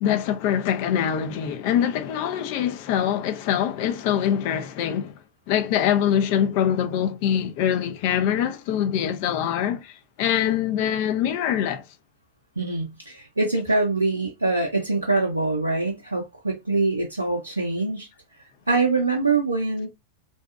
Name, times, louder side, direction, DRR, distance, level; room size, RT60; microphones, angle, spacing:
voice 1, 0.0-5.1 5.5-11.8, left 9 dB, 45° left, 0.4 m, -24 dB
voice 2, 12.6-18.1 18.7-19.9, right 3 dB, 80° right, 0.5 m, -24 dB
2.6 x 2.2 x 2.3 m
figure-of-eight pair, 90°, 0 cm